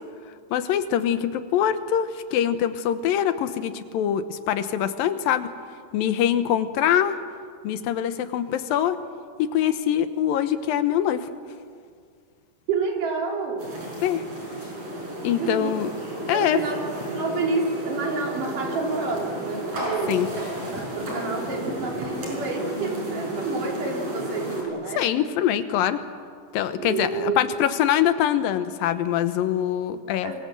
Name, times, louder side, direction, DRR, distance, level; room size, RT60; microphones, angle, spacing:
voice 1, 0.5-5.5 5.9-7.2 7.6-9.0 9.5-11.3 14.0-14.2 15.2-15.9 16.3-16.6 20.1-20.3 24.9-26.0 26.5-30.3, left 10 dB, 75° left, 11 dB, 2.7 m, -23 dB
voice 2, 12.7-13.8 15.2-15.7 16.3-16.8 17.1-25.0 26.8-27.4 30.2-30.4, right 4 dB, 60° right, 1 dB, 4.7 m, -29 dB
sound 1, 13.6-24.6, right 1 dB, 40° right, 7.2 m, -32 dB
27.0 x 22.5 x 7.6 m, 2.1 s
omnidirectional pair, 4.2 m